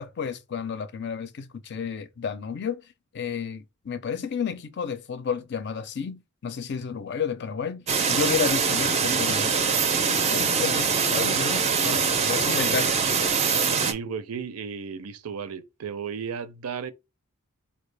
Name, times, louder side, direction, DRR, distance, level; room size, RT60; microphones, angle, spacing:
voice 1, 0.0-2.9 3.1-9.6 10.0-13.0, left 6 dB, 55° left, 0.5 m, -31 dB
sound 1, 7.9-13.9, right 5 dB, 30° right, 0.4 m, -23 dB
voice 2, 13.7-16.9, right 6 dB, 90° right, 0.5 m, -34 dB
4.3 x 2.3 x 3.2 m
head